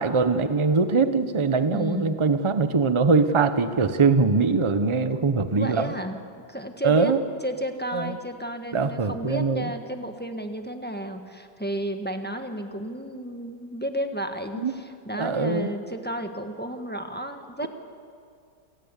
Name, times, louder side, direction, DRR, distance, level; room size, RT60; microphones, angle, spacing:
voice 1, 0.0-5.9 6.8-7.2 7.9-8.1 8.7-9.7 14.5-14.7 15.1-15.7, right 4 dB, 25° right, 10 dB, 0.8 m, -22 dB
voice 2, 1.7-2.2 5.6-6.2 6.5-7.1 7.4-17.7, right 1 dB, 5° left, 5 dB, 1.2 m, -32 dB
28.0 x 18.0 x 8.4 m, 2.3 s
omnidirectional pair, 1.9 m